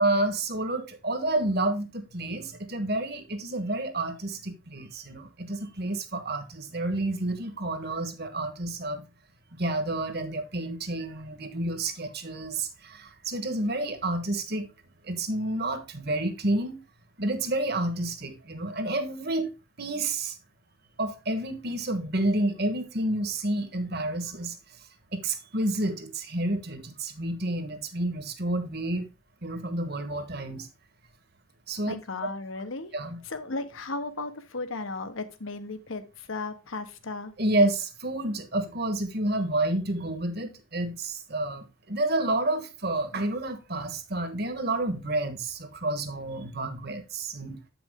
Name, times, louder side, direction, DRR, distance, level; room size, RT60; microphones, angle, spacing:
voice 1, 0.0-9.1 9.5-14.7 15.0-16.8 17.2-19.5 19.8-20.3 21.0-24.6 25.1-29.1 29.4-30.7 31.7-31.9 32.9-33.2 37.4-47.6, right 2 dB, 50° right, 1.3 m, -29 dB
voice 2, 31.9-32.9 33.3-37.3, left 3 dB, 70° left, 1.0 m, -35 dB
8.7 x 6.1 x 3.6 m
head